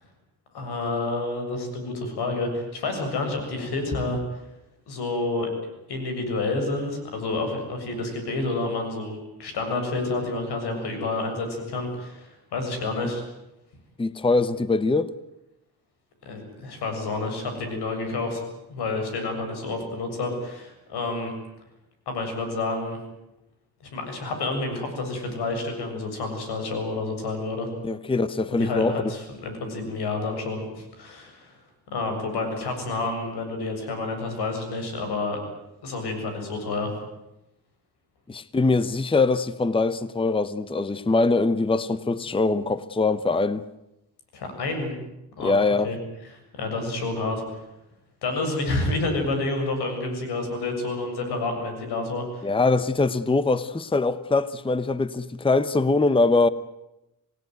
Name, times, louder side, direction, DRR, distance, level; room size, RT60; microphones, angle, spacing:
voice 1, 0.5-4.2 4.9-5.5 5.9-13.2 16.2-18.4 18.7-21.3 22.1-23.0 23.9-27.7 28.5-31.5 31.9-35.4 35.8-36.9 44.3-44.9 45.4-45.6 45.8-46.0 46.2-47.6 48.2-52.5, left 2 dB, 90° left, 7.4 m, -29 dB
voice 2, 14.0-15.1 27.8-28.9 38.3-43.6 45.4-45.9 52.4-56.5, left 3 dB, 15° left, 0.9 m, -22 dB
27.0 x 18.0 x 9.4 m
cardioid pair, 105°, 38 cm